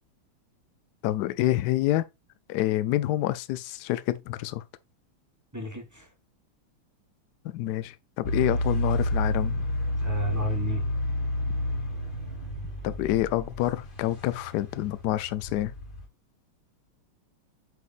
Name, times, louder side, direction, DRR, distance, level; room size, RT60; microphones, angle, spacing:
voice 1, 1.0-2.0 2.5-4.6 7.4-9.6 12.8-15.7, left 14 dB, 85° left, 0.9 m, -27 dB
voice 2, 5.5-6.1 10.0-10.8, right 1 dB, 15° right, 0.6 m, -33 dB
sound 1, 8.2-16.1, left 1 dB, 35° left, 0.8 m, -30 dB
8.1 x 5.0 x 2.5 m
omnidirectional pair, 2.4 m